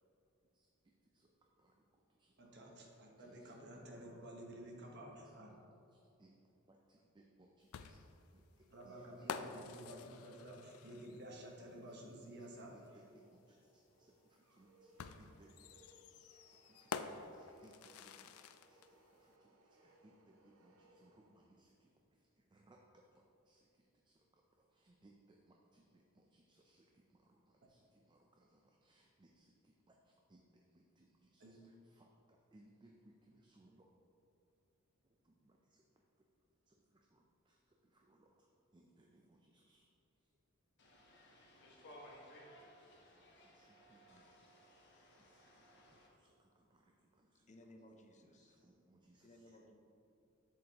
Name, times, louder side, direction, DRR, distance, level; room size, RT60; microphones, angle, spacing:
voice 1, 0.5-2.6 2.8-3.6 4.1-4.2 5.9-6.4 6.7-8.1 8.3-10.2 10.8-11.2 11.8-33.9 35.0-35.8 36.7-38.5 38.7-39.9 40.2-40.3 41.8-44.3 45.2-45.4 45.7-47.5 48.2-49.5, right 1 dB, 20° right, 1 dB, 0.4 m, -69 dB
voice 2, 2.4-5.5 8.7-12.7 31.4-31.6, right 1 dB, 55° right, 0 dB, 1.2 m, -52 dB
sound 1, 7.7-11.4 12.9-13.0 15.0-18.9, left 6 dB, 80° left, 0.4 m, -48 dB
sound 2, 12.7-21.8, right 1 dB, 85° right, 0.7 m, -69 dB
sound 3, 40.8-46.1, equal, 55° left, 1.2 m, -60 dB
voice 3, 47.5-48.6 49.2-49.8, left 1 dB, 35° left, 3 dB, 0.6 m, -60 dB
7.8 x 7.2 x 2.9 m, 2.7 s
head